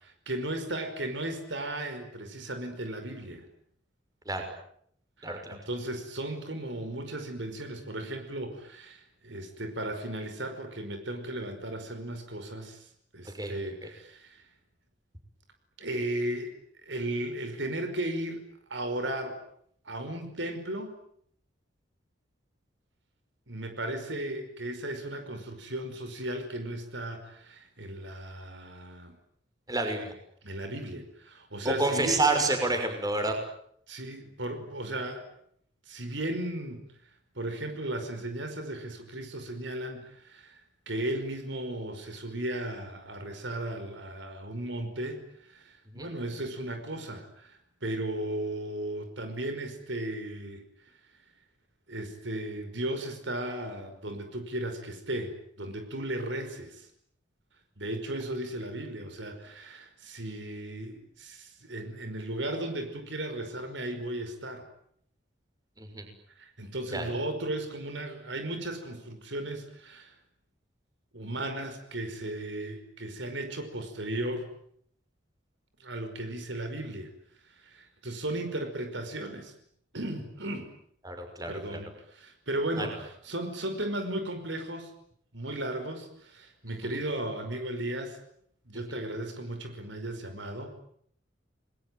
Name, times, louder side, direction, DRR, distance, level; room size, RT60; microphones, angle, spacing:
voice 1, 0.0-3.5 5.2-14.5 15.8-16.5 16.8-18.4 18.7-19.4 19.9-21.0 23.5-29.2 30.4-32.2 33.9-35.2 35.9-50.6 51.9-56.9 57.8-64.7 66.4-70.2 71.1-74.5 75.8-77.1 77.4-79.5 79.9-80.7 81.5-84.9 85.3-88.2 88.7-90.8, right 1 dB, 70° right, 7 dB, 5.3 m, -36 dB
voice 2, 5.2-5.6 13.4-13.6 29.7-30.1 31.6-33.3 45.9-46.1 65.8-66.1 66.9-67.1 81.0-81.8 82.8-82.9 86.8-87.0, right 2 dB, 20° right, 5 dB, 6.1 m, -29 dB
30.0 x 21.5 x 9.3 m, 0.68 s
head